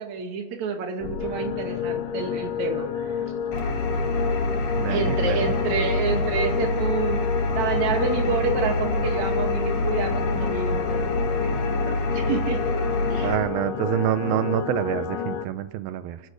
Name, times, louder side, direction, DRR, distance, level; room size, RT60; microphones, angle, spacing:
voice 1, 0.0-3.2 4.9-7.2 7.6-11.5 11.8-12.6 13.1-13.3, right 6 dB, 55° right, 4 dB, 3.2 m, -29 dB
sound 1, 1.0-15.5, left 7 dB, 75° left, 2.9 m, -29 dB
Engine, 3.5-13.4, left 2 dB, 60° left, 4.1 m, -26 dB
voice 2, 4.8-5.5 13.2-16.2, right 12 dB, 85° right, 11 dB, 2.6 m, -27 dB
30.0 x 13.0 x 6.6 m, 1.3 s
omnidirectional pair, 4.1 m